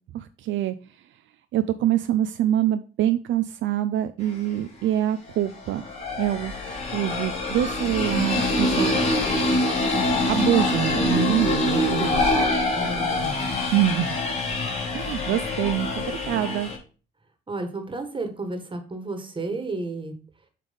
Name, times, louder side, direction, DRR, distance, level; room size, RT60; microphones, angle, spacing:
voice 1, 0.1-0.8 1.5-5.8 6.2-6.5 6.9-9.0 10.3-12.3 13.7-14.3 14.9-16.7, right 12 dB, 75° right, 10 dB, 0.5 m, -25 dB
sound 1, 4.3-4.4 5.5-16.8, left 2 dB, 30° left, 2.7 m, -25 dB
voice 2, 12.7-13.5 17.5-20.1, right 3 dB, 25° right, 7 dB, 1.6 m, -32 dB
7.4 x 3.4 x 5.3 m, 0.36 s
cardioid pair, 90°, 20 cm